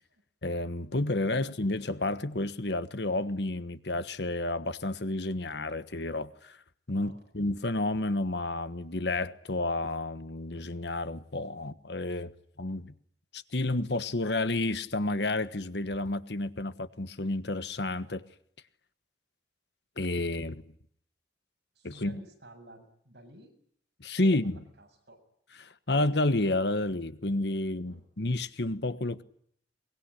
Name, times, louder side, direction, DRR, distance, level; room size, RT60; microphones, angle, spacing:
voice 1, 0.4-6.6 6.9-12.3 12.6-12.9 13.3-18.2 20.0-20.6 21.8-22.2 24.0-24.6 25.6-29.2, left 2 dB, 65° left, 1.3 m, -30 dB
voice 2, 21.8-23.5 24.2-25.2 27.9-28.1, right 1 dB, 65° right, 7.5 m, -52 dB
23.5 x 22.0 x 10.0 m
head